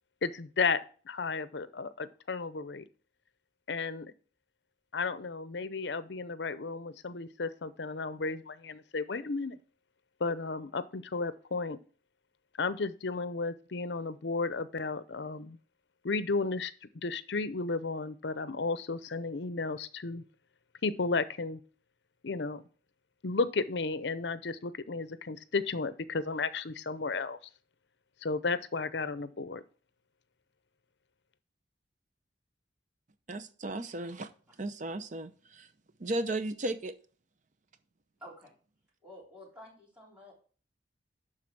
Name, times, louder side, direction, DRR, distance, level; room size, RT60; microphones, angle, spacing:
voice 1, 0.2-0.8 1.0-2.8 3.7-4.1 4.9-9.6 10.2-11.8 12.6-15.6 16.0-16.7 17.0-20.2 20.8-21.6 22.2-22.6 23.2-27.4 28.2-29.6, left 4 dB, 65° left, 15 dB, 0.7 m, -33 dB
voice 2, 33.3-34.3 34.6-35.7 36.0-36.9, right 2 dB, 40° right, 11 dB, 0.7 m, -35 dB
voice 3, 38.2-38.5 39.0-40.3, left 1 dB, 5° right, -4 dB, 3.7 m, -50 dB
11.5 x 4.0 x 5.9 m, 0.41 s
head